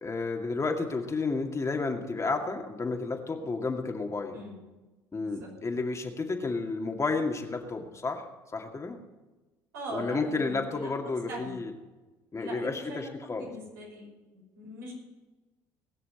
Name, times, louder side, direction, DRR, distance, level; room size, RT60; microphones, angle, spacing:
voice 1, 0.0-4.4 5.1-8.2 8.5-9.0 9.9-11.7 12.3-13.5, left 3 dB, 30° left, 2 dB, 2.2 m, -31 dB
voice 2, 4.3-4.6 5.2-5.8 9.7-11.7 12.4-14.9, right 1 dB, 85° right, -3 dB, 5.8 m, -42 dB
20.0 x 6.8 x 8.0 m, 1.2 s
hypercardioid pair, 60°, 11 cm